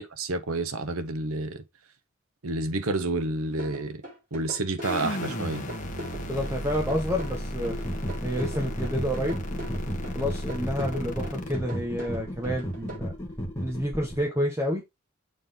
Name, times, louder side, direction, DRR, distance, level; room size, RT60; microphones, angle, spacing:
voice 1, 0.0-1.6 2.4-4.0 4.3-5.6, right 2 dB, 85° right, 1.0 m, -29 dB
sound 1, 3.6-13.0, equal, 40° right, 3.5 m, -40 dB
sound 2, 4.8-11.5, equal, 35° left, 1.4 m, -34 dB
voice 2, 6.3-7.8 8.2-9.4 10.1-13.1 13.6-14.8, equal, 15° right, 1.3 m, -29 dB
sound 3, 7.7-14.2, equal, 15° left, 1.7 m, -35 dB
7.4 x 4.3 x 3.6 m
head